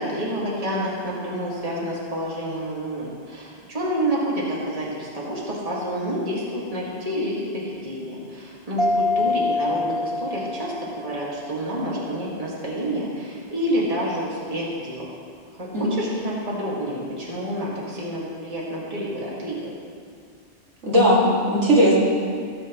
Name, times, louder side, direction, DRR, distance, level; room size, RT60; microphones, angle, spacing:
voice 1, 0.0-15.1 15.6-19.7, equal, 30° right, -6 dB, 2.0 m, -28 dB
Mallet percussion, 8.8-11.3, left 2 dB, ahead, 0.4 m, -25 dB
voice 2, 20.8-21.9, equal, 80° right, -7 dB, 2.6 m, -17 dB
16.5 x 7.9 x 3.0 m, 2.3 s
omnidirectional pair, 1.2 m